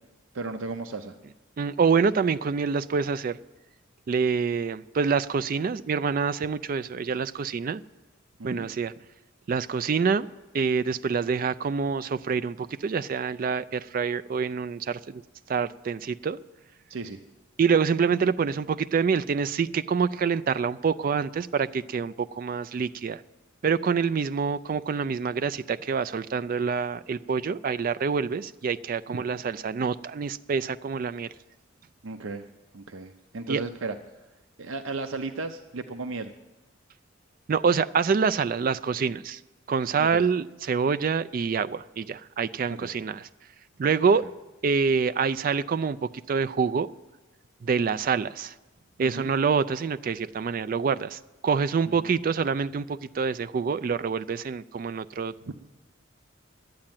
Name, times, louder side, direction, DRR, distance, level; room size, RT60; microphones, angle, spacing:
voice 1, 0.3-1.1 8.4-8.7 16.9-17.2 29.1-29.4 32.0-32.5 32.7-33.9 34.6-36.3 40.0-40.2 42.7-42.9 49.0-49.3 52.0-52.1 55.4-55.5, right 3 dB, 80° right, 7 dB, 0.6 m, -35 dB
voice 2, 1.6-3.4 4.1-7.8 8.4-8.9 9.5-10.3 10.5-15.2 15.5-16.4 17.6-23.2 23.6-31.3 33.5-33.6 37.5-39.4 39.7-43.2 43.8-44.2 44.6-46.9 47.6-48.5 49.0-55.3, right 5 dB, 45° right, 12 dB, 0.3 m, -26 dB
11.5 x 8.6 x 9.0 m, 1.1 s
head